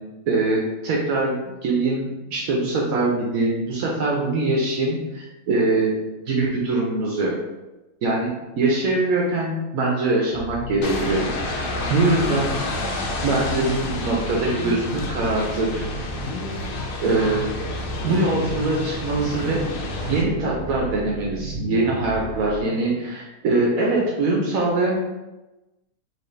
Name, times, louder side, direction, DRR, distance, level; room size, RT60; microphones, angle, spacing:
voice 1, 0.3-6.0 6.3-7.3 8.0-12.5 13.2-15.9 17.0-17.4 18.0-19.6 20.1-25.0, right 2 dB, 75° right, -3 dB, 1.1 m, -23 dB
sound 1, 10.3-22.6, equal, 15° right, 0.7 m, -33 dB
sound 2, 10.8-20.2, left 2 dB, 80° left, 0.5 m, -30 dB
4.6 x 2.4 x 3.2 m, 1.0 s
omnidirectional pair, 1.5 m